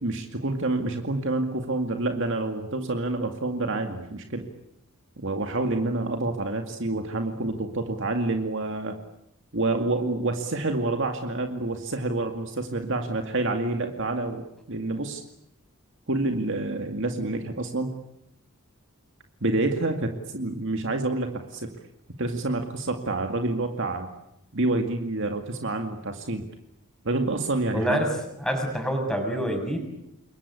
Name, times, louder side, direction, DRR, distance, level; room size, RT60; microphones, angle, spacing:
voice 1, 0.0-4.4 5.2-8.9 9.5-15.2 16.1-17.9 19.4-21.7 22.2-24.1 24.5-26.4 27.0-28.0, right 2 dB, 60° right, 5 dB, 2.2 m, -28 dB
voice 2, 27.7-28.1 28.4-29.8, equal, 5° left, 3 dB, 6.7 m, -26 dB
28.5 x 22.5 x 8.5 m, 0.81 s
head